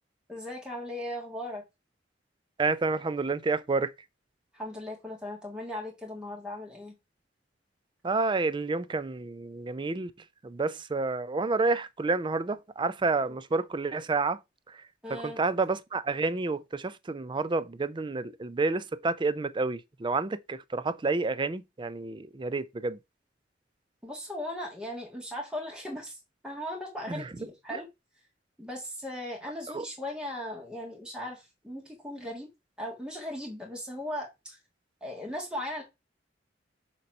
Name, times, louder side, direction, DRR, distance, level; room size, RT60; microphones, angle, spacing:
voice 1, 0.3-1.6 4.5-6.9 13.3-13.4 15.0-15.4 24.0-26.2 26.4-27.9 28.6-32.5 32.8-34.6 35.0-35.8, left 1 dB, 5° right, 1.7 m, -38 dB
voice 2, 2.6-3.9 8.0-10.1 10.4-14.4 15.1-23.0 27.1-27.2 29.7-29.9, right 3 dB, 25° right, 0.4 m, -29 dB
6.8 x 3.0 x 5.3 m
head